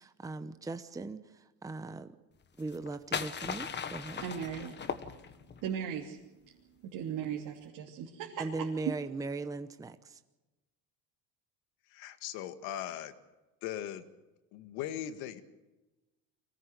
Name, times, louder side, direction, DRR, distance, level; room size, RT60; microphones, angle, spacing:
voice 1, 0.0-2.2 2.6-4.2 8.4-10.2, right 3 dB, 10° right, 10 dB, 0.8 m, -39 dB
sound 1, 2.6-5.6, left 6 dB, 30° left, 1.3 m, -38 dB
voice 2, 4.2-4.8 5.6-6.2 6.8-8.7, right 8 dB, 65° right, -1 dB, 2.9 m, -37 dB
voice 3, 11.9-13.1 13.6-14.1 14.5-15.4, left 11 dB, 80° left, 10 dB, 1.9 m, -39 dB
24.0 x 17.5 x 8.2 m, 1.1 s
cardioid pair, 130°, 37 cm